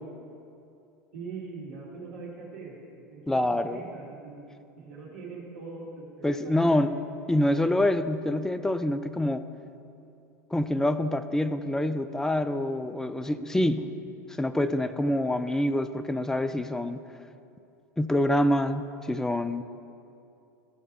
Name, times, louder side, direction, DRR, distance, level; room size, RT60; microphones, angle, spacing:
voice 1, 1.1-4.5 4.8-7.0 13.6-13.9 14.5-15.1, right 4 dB, 60° right, -4 dB, 2.2 m, -43 dB
voice 2, 3.3-3.8 6.2-7.0 7.3-9.5 10.5-13.9 14.4-17.0 18.0-19.6, left 1 dB, 5° left, 11 dB, 0.3 m, -26 dB
13.0 x 4.5 x 4.5 m, 2.6 s
figure-of-eight pair, 80°, 9 cm